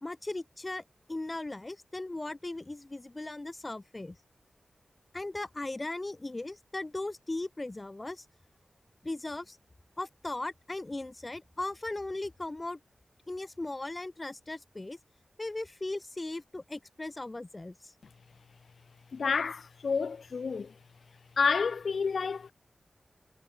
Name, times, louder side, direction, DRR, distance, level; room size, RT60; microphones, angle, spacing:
voice 1, 0.0-4.2 5.1-8.3 9.0-9.6 10.0-12.8 13.3-15.0 15.4-17.9, left 2 dB, 25° left, 2.3 m, -38 dB
voice 2, 19.1-20.8 21.4-22.5, left 5 dB, 75° left, 0.8 m, -29 dB
wide cardioid pair, 110°, 0 cm